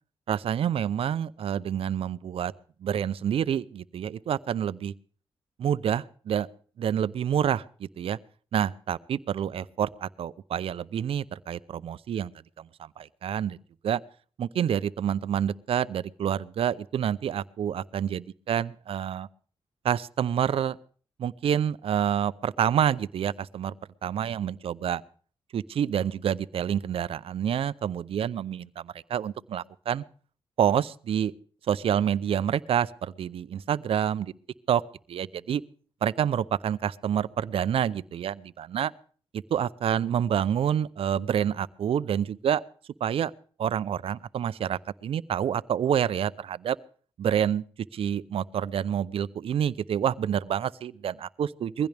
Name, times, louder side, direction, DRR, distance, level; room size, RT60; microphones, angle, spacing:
voice 1, 0.3-2.5 2.8-4.9 5.6-6.5 6.8-8.2 8.5-12.3 12.6-13.6 13.8-14.0 14.4-19.3 19.8-20.8 21.2-23.7 24.0-25.0 25.5-30.0 30.6-31.3 31.6-34.3 34.7-34.8 35.1-35.6 36.0-38.9 39.3-42.6 43.0-43.3 43.6-46.8 47.2-47.6 47.9-51.9, right 9 dB, 70° right, 0.7 m, -28 dB
21.5 x 15.5 x 3.5 m
cardioid pair, 65°, 10 cm